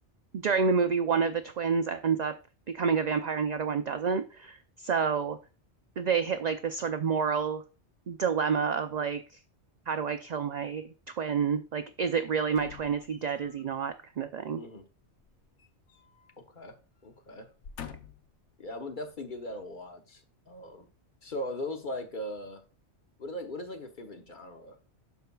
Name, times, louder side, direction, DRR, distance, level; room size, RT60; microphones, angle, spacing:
voice 1, 0.3-2.3 2.7-4.6 4.8-5.4 6.0-7.6 8.1-9.2 9.9-14.6, right 6 dB, 55° right, 0.4 m, -29 dB
sound 1, 12.5-13.6 15.2-16.3 16.6-16.8 17.4-18.4 19.0-19.1, left 8 dB, 80° left, 1.0 m, -47 dB
voice 2, 16.4-16.8 17.0-17.5 18.6-20.2 20.5-20.9 21.2-22.6 23.2-24.8, left 1 dB, 45° left, 1.1 m, -39 dB
12.0 x 4.7 x 2.3 m
omnidirectional pair, 1.2 m